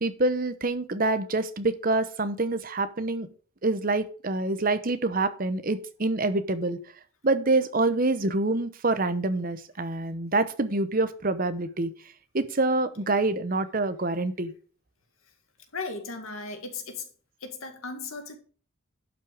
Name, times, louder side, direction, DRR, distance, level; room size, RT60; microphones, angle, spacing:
voice 1, 0.0-3.3 3.6-6.8 7.2-11.9 12.3-14.5, right 2 dB, 40° right, 0.8 m, -26 dB
voice 2, 15.7-17.1 17.4-18.4, left 3 dB, 85° left, 2.1 m, -36 dB
11.5 x 5.9 x 5.0 m
head